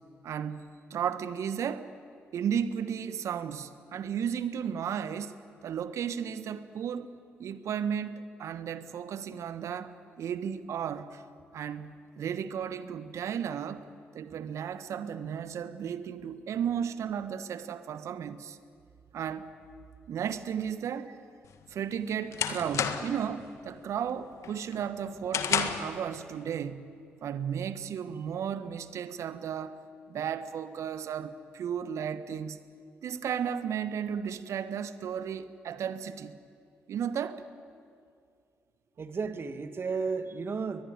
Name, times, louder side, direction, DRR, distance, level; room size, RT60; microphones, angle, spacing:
voice 1, 0.2-1.9 2.3-5.3 5.6-11.2 11.5-13.9 14.1-18.6 19.1-19.5 20.1-21.2 21.7-26.9 27.2-29.8 30.1-32.6 33.0-36.4 36.9-37.4, right 8 dB, 60° right, 12 dB, 1.3 m, -34 dB
sound 1, 21.5-23.3 23.7-24.0 24.4-26.0, left 8 dB, 60° left, 1.7 m, -31 dB
voice 2, 39.0-40.8, right 4 dB, 45° right, 9 dB, 2.0 m, -33 dB
21.5 x 21.5 x 9.5 m, 2.3 s
hypercardioid pair, 40°, 6 cm